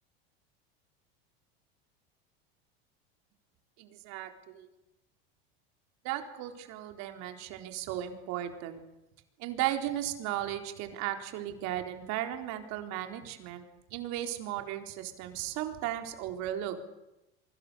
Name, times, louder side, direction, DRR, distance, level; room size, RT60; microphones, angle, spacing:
voice 1, 3.8-4.7 6.0-8.8 9.4-13.6 13.9-16.8, right 12 dB, 60° right, 5 dB, 4.1 m, -36 dB
28.5 x 24.0 x 7.0 m, 0.93 s
supercardioid pair, 100°, 30 cm